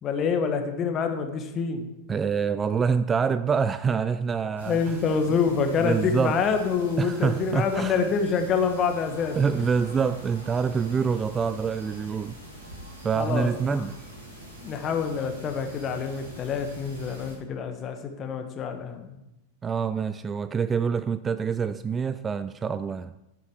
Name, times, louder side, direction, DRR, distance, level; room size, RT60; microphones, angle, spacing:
voice 1, 0.0-1.9 4.6-9.4 13.1-13.9 14.6-19.2, left 5 dB, 30° left, 1.4 m, -26 dB
voice 2, 2.1-4.8 5.8-6.4 7.0-8.0 9.4-12.4 13.0-13.9 19.6-23.1, right 6 dB, 20° right, 0.3 m, -26 dB
sound 1, 4.6-17.3, right 1 dB, 75° right, 3.8 m, -44 dB
10.5 x 8.3 x 4.8 m
figure-of-eight pair, 90°, 0 cm